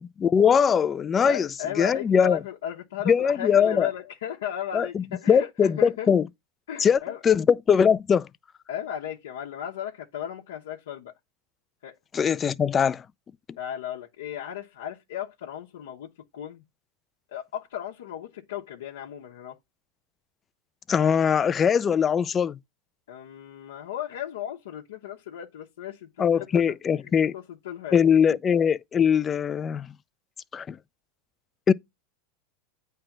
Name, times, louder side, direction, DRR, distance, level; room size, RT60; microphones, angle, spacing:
voice 1, 0.0-1.5 1.8-2.4 3.1-3.9 4.7-6.3 6.8-8.3 12.1-13.0 20.9-22.6 26.2-27.3 27.9-29.9 30.5-30.8 31.7-31.8, left 7 dB, 25° left, 0.4 m, -21 dB
voice 2, 1.2-6.1 6.7-7.2 8.7-11.1 11.8-11.9 13.6-16.6 17.3-19.6 23.1-26.8 27.3-28.0 28.3-28.4, left 10 dB, 85° left, 0.9 m, -35 dB
8.8 x 3.3 x 5.9 m
supercardioid pair, 125°, 0 cm